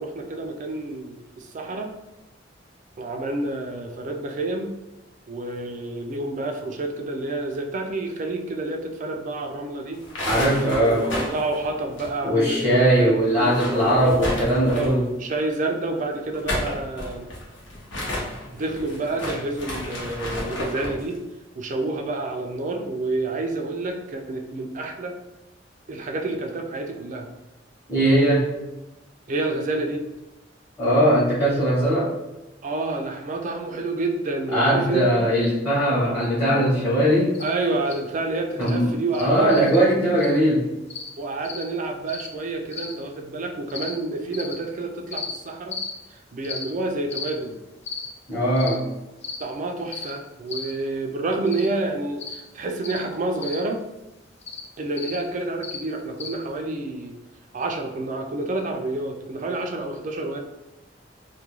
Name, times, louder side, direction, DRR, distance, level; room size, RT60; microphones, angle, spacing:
voice 1, 0.0-1.9 3.0-4.7 5.3-10.0 10.5-14.2 14.7-17.3 18.5-21.2 21.5-25.2 25.9-27.3 29.3-30.1 32.6-35.2 37.4-39.6 41.2-45.8 46.1-47.6 49.4-53.8 54.8-57.1 57.5-60.4, right 2 dB, 45° right, 3 dB, 0.4 m, -29 dB
sound 1, 9.9-12.6 12.8-12.9 13.3-15.1 16.2-21.0, left 1 dB, 85° left, 0.8 m, -31 dB
voice 2, 10.2-11.1 12.2-15.0 27.9-28.5 30.8-32.1 34.5-37.3 38.6-40.6 48.3-48.8, right 1 dB, 15° left, -10 dB, 0.8 m, -20 dB
sound 2, 37.3-37.5 37.9-38.0 38.6-38.7 39.1-39.3 39.6-39.8 40.2-40.4 40.9-41.1 41.4-41.6 42.1-42.3 42.7-42.9 43.7-43.9 44.3-44.5 45.1-45.3 45.7-45.9 46.4-46.6 47.1-47.3 47.8-48.1 48.6-48.7 49.2-49.4 49.9-50.1 50.5-50.7 51.5-51.7 52.2-52.4 52.8-53.0 53.4-53.6 54.4-54.6 55.0-55.2 55.6-55.8 56.2-56.3, left 5 dB, 35° left, 0.4 m, -34 dB
2.3 x 2.2 x 3.0 m, 1.0 s
head